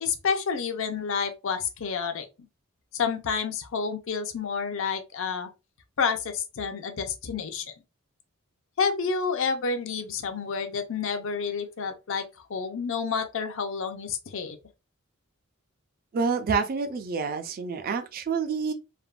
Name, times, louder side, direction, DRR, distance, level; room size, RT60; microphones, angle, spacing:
voice 1, 0.0-2.3 2.9-5.5 6.0-7.7 8.8-14.6, left 5 dB, 65° left, 0.5 m, -29 dB
voice 2, 16.1-18.7, right 5 dB, 45° right, 0.4 m, -28 dB
3.3 x 2.1 x 2.4 m
head